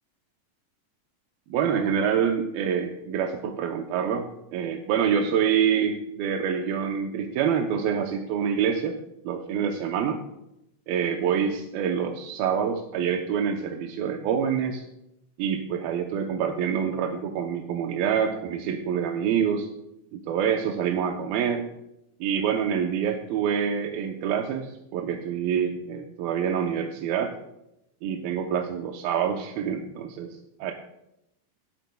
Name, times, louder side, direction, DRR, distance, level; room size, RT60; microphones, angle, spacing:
voice 1, 1.5-4.3 4.5-9.0 9.2-10.2 10.9-14.8 15.4-19.7 20.1-21.7 22.2-27.3 28.0-30.7, right 7 dB, 85° right, 2 dB, 2.7 m, -26 dB
18.5 x 12.0 x 2.3 m, 0.85 s
omnidirectional pair, 4.1 m